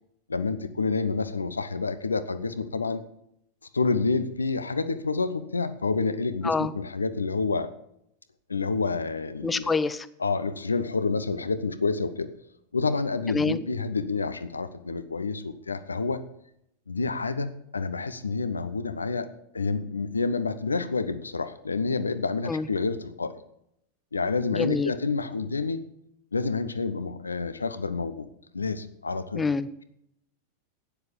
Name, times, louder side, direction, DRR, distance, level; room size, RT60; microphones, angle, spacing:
voice 1, 0.3-3.0 3.7-7.7 8.5-9.7 10.2-12.3 12.7-16.2 16.9-19.3 19.5-23.3 24.1-25.8 26.3-28.3 28.5-29.4, left 4 dB, 75° left, 12 dB, 0.9 m, -28 dB
voice 2, 9.4-10.1 13.3-13.6 22.5-22.7 24.5-24.9 29.3-29.7, left 4 dB, 15° left, 15 dB, 0.7 m, -26 dB
12.0 x 9.8 x 5.2 m, 0.76 s
figure-of-eight pair, 90°, 0 cm